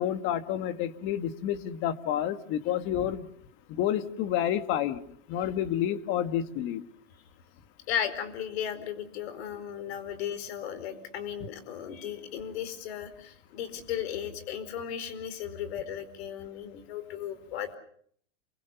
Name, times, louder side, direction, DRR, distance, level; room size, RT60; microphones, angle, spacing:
voice 1, 0.0-3.3 3.7-5.0 5.3-6.8, left 10 dB, 30° left, 10 dB, 1.9 m, -29 dB
voice 2, 7.9-17.7, left 9 dB, 55° left, 12 dB, 4.7 m, -35 dB
28.5 x 23.5 x 7.0 m, 0.64 s
supercardioid pair, 150°, 37 cm